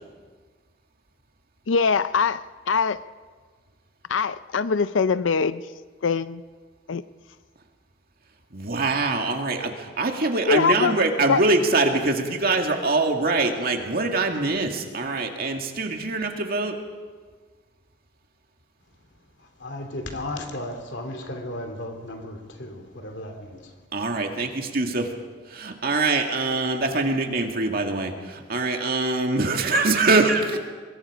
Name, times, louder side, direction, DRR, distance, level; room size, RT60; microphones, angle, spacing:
voice 1, 1.7-2.4 2.7-3.0 4.1-5.6 6.0-6.4 6.9-7.0 10.5-11.4, left 5 dB, 90° left, 0.5 m, -22 dB
voice 2, 8.5-16.8 23.9-24.5 24.7-25.1 25.5-30.6, right 3 dB, 55° right, 2.2 m, -23 dB
voice 3, 19.4-23.8, left 1 dB, 65° left, 3.0 m, -35 dB
24.0 x 22.0 x 5.1 m
head